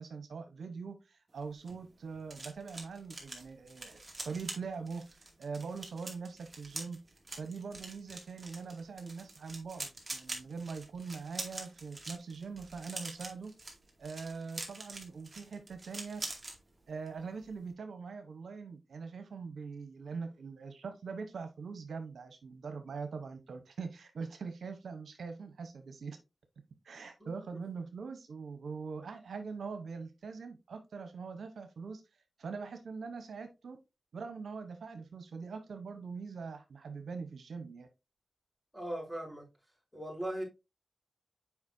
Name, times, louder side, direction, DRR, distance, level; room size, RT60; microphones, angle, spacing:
voice 1, 0.0-7.0 7.3-13.5 14.0-16.2 16.9-26.2 26.8-32.0 32.4-33.8 34.1-37.9, right 5 dB, 85° right, 0.9 m, -42 dB
sound 1, 1.4-16.6 16.9-17.2 17.4-17.7, right 2 dB, 25° right, 2.3 m, -45 dB
voice 2, 38.7-39.4 39.9-40.4, right 1 dB, ahead, 4.0 m, -38 dB
7.2 x 5.1 x 2.7 m
cardioid pair, 60°, 0 cm